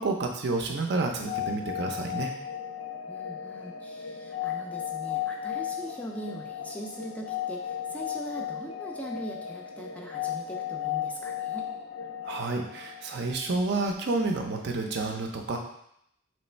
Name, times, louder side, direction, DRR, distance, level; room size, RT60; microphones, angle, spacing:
voice 1, 0.0-2.3 12.2-15.6, right 3 dB, 60° right, 2 dB, 0.6 m, -29 dB
sound 1, 0.9-13.6, left 9 dB, 75° left, 0.4 m, -35 dB
voice 2, 3.1-11.7, equal, 5° left, -1 dB, 0.4 m, -41 dB
3.2 x 3.1 x 4.3 m, 0.74 s
head